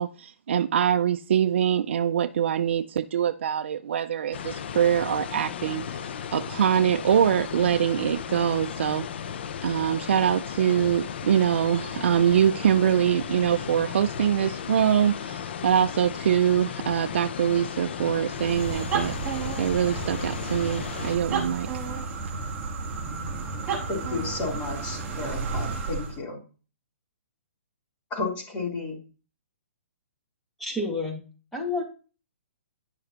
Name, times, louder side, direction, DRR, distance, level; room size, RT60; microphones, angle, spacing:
voice 1, 0.0-9.1 9.6-19.1 19.6-21.7, right 9 dB, 55° right, 9 dB, 0.4 m, -24 dB
sound 1, 4.3-21.2, left 8 dB, 50° left, 0.7 m, -35 dB
sound 2, 18.3-26.2, right 4 dB, 15° right, 1.5 m, -32 dB
voice 2, 23.9-26.4 28.1-29.0, left 3 dB, 15° left, -3 dB, 3.3 m, -32 dB
voice 3, 30.6-31.2 31.5-31.8, left 2 dB, ahead, -2 dB, 1.9 m, -29 dB
10.5 x 6.9 x 2.9 m, 0.35 s
hypercardioid pair, 165°, 7 cm